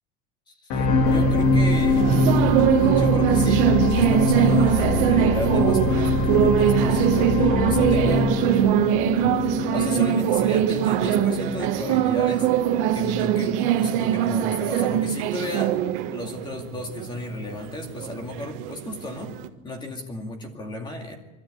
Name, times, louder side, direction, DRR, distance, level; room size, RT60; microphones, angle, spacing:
voice 1, 0.5-2.1 2.8-7.4 7.7-8.4 9.7-12.5 12.9-19.4 19.6-21.2, left 2 dB, 15° left, 3 dB, 2.3 m, -34 dB
sound 1, 0.7-13.1 13.7-13.8, left 2 dB, 50° left, 1.9 m, -23 dB
sound 2, 1.1-19.5, right 11 dB, 60° right, 1.6 m, -22 dB
24.5 x 13.0 x 8.6 m, 1.1 s
cardioid pair, 180°, 31 cm